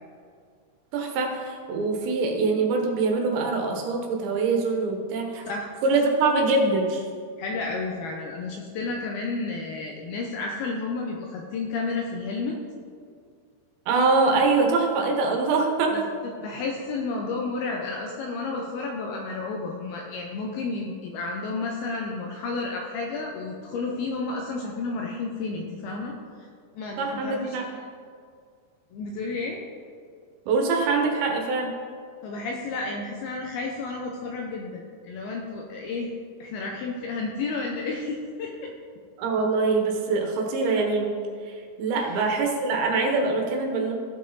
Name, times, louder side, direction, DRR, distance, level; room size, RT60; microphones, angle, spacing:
voice 1, 0.9-5.4 5.8-7.0 13.9-16.0 27.0-27.7 30.5-31.7 39.2-41.2 41.5-43.9, right 3 dB, 80° right, 2 dB, 3.3 m, -24 dB
voice 2, 7.4-12.6 15.9-26.2 26.8-27.8 28.9-29.6 32.2-36.1 36.4-38.7 42.0-42.1, left 3 dB, 80° left, 0 dB, 2.3 m, -31 dB
15.5 x 5.4 x 4.0 m, 2.1 s
omnidirectional pair, 5.2 m